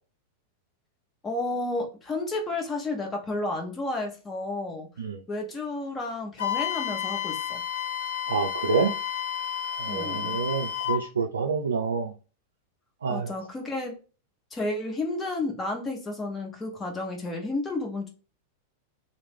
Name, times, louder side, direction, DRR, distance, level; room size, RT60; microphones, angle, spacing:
voice 1, 1.2-4.9 5.3-7.6 9.9-10.4 13.1-14.0 14.5-18.1, left 2 dB, 15° left, 0.9 m, -31 dB
Wind instrument woodwind instrument, 6.4-11.0, left 10 dB, 60° left, 0.5 m, -31 dB
voice 2, 8.3-8.9 9.8-12.1 13.0-13.3, right 5 dB, 70° right, 0.4 m, -27 dB
2.9 x 2.0 x 3.5 m
figure-of-eight pair, 90°, 0 cm